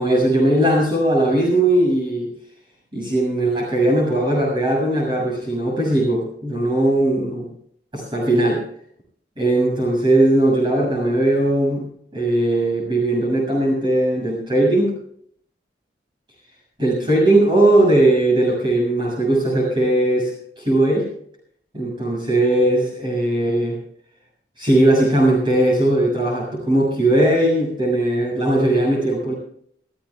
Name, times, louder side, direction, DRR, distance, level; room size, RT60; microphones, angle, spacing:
voice 1, 0.0-2.3 2.9-7.5 7.9-8.6 9.4-11.8 12.1-15.0 16.8-20.3 20.6-21.1 21.7-23.8 24.6-29.3, right 1 dB, 25° right, -2 dB, 7.1 m, -18 dB
28.0 x 15.0 x 2.4 m, 0.64 s
head